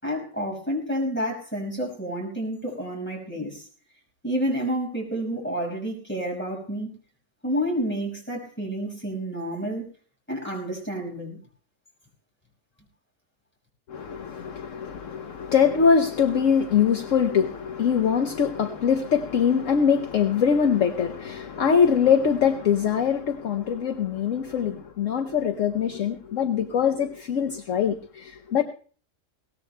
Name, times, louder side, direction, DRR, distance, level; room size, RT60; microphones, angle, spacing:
voice 1, 0.0-3.7 4.2-6.9 7.4-9.8 10.3-11.4, equal, 5° left, 5.3 m, -29 dB
voice 2, 13.9-28.6, left 7 dB, 60° left, 1.1 m, -23 dB
21.5 x 18.0 x 2.2 m
omnidirectional pair, 1.5 m